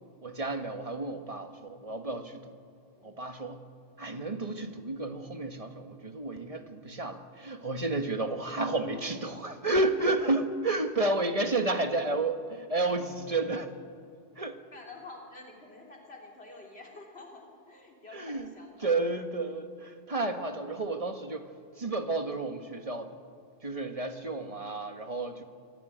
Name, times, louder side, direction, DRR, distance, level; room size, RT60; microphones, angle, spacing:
voice 1, 0.2-2.5 3.0-3.6 4.0-13.7 14.4-14.6 18.1-18.5 18.8-21.4 21.8-23.1 23.6-25.4, right 2 dB, 30° right, 7 dB, 1.5 m, -31 dB
voice 2, 8.9-9.4 9.8-9.9 14.7-18.9 24.2-24.6, left 3 dB, 65° left, 0 dB, 3.6 m, -49 dB
25.5 x 16.0 x 9.2 m, 2.4 s
omnidirectional pair, 1.1 m